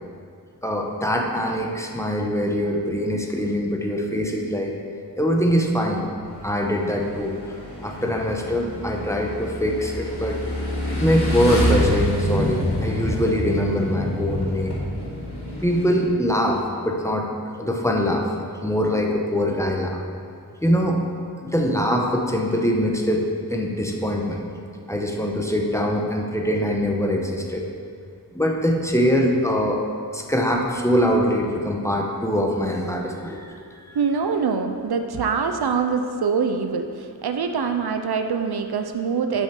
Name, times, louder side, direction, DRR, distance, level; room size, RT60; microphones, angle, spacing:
voice 1, 0.6-4.7 5.2-6.1 6.4-7.3 7.8-10.4 10.9-14.8 15.6-17.3 17.6-18.3 18.6-20.0 20.6-21.0 21.4-23.2 23.5-24.4 24.9-27.6 28.3-29.8 30.1-33.5, equal, 5° left, 0 dB, 1.0 m, -23 dB
Motorcycle / Engine, 6.2-16.0, equal, 85° left, 2.1 m, -27 dB
voice 2, 33.9-39.4, right 5 dB, 75° right, 6 dB, 0.6 m, -24 dB
7.1 x 5.6 x 5.9 m, 2.3 s
wide cardioid pair, 60°, 39 cm